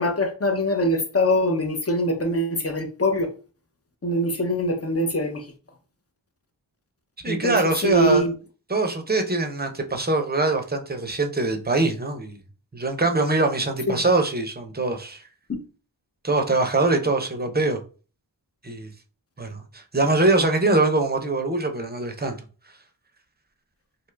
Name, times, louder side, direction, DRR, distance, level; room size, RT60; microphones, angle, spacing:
voice 1, 0.0-3.3 4.0-5.5 7.3-8.3 13.9-14.0 15.5-15.6, equal, 35° left, 0.6 m, -23 dB
voice 2, 7.2-8.2 8.7-12.4 12.7-15.2 16.2-17.8 18.6-18.9 19.4-22.4, right 2 dB, 20° right, 0.6 m, -23 dB
2.7 x 2.4 x 3.2 m
wide cardioid pair, 40°, 43 cm